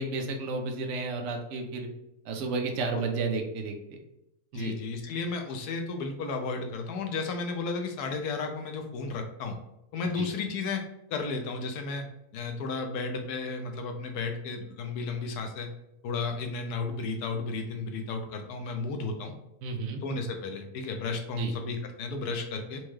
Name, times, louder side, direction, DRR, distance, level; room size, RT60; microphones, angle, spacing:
voice 1, 0.0-1.9 2.3-3.7 4.5-4.7 10.2-10.3 19.6-20.0 21.3-21.5, right 3 dB, 65° right, 3 dB, 0.9 m, -32 dB
voice 2, 4.5-9.6 9.9-10.8 11.1-12.0 12.3-15.7 16.0-19.3 20.0-22.8, left 4 dB, 85° left, 4 dB, 1.2 m, -33 dB
4.3 x 2.3 x 3.1 m, 0.85 s
omnidirectional pair, 1.6 m